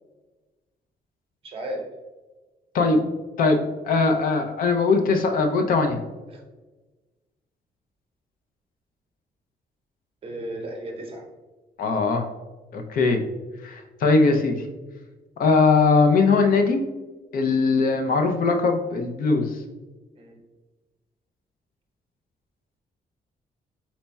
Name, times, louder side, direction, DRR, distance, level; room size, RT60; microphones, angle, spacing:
voice 1, 1.4-1.9 10.2-11.2 20.2-20.3, right 1 dB, 35° right, 2 dB, 0.8 m, -34 dB
voice 2, 3.8-6.0 11.8-12.3 12.7-13.2 13.6-14.7 15.4-16.8 17.3-19.6, left 4 dB, 65° left, 4 dB, 0.6 m, -20 dB
4.2 x 4.1 x 2.3 m, 1.2 s
cardioid pair, 180°, 16 cm